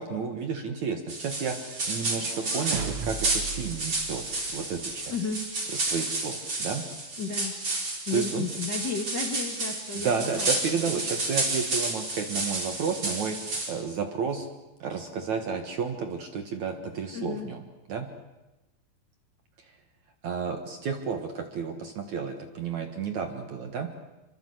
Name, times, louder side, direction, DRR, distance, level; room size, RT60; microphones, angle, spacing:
voice 1, 0.0-5.1 5.7-6.8 8.1-8.5 9.9-14.5 14.8-17.6 17.9-18.1 20.2-23.9, right 6 dB, 55° right, 5 dB, 2.3 m, -32 dB
sound 1, 1.1-13.7, right 2 dB, 30° right, 4.7 m, -31 dB
sound 2, 1.9-5.0, right 6 dB, 80° right, 1.5 m, -37 dB
voice 2, 5.1-5.4 7.2-7.6 8.1-10.5 11.0-11.1 17.1-17.5, left 5 dB, 40° left, 2 dB, 1.5 m, -33 dB
27.0 x 24.0 x 7.9 m, 1.0 s
omnidirectional pair, 4.9 m